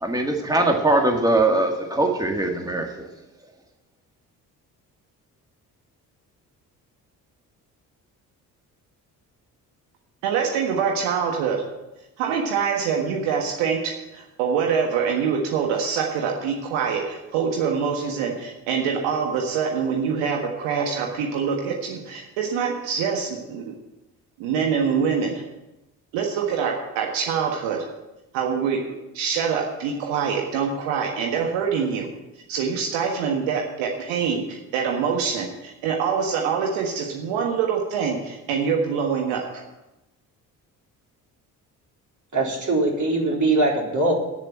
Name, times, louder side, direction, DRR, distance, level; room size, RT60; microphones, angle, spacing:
voice 1, 0.0-3.0, right 2 dB, 10° right, 2 dB, 1.9 m, -21 dB
voice 2, 10.2-11.6 12.2-23.7 24.4-25.4 26.1-27.8 28.3-32.1 32.5-39.6, right 6 dB, 75° right, 1 dB, 1.6 m, -25 dB
voice 3, 42.3-44.1, right 2 dB, 40° right, -1 dB, 3.9 m, -21 dB
9.2 x 7.2 x 8.8 m, 0.96 s
hypercardioid pair, 45°, 47 cm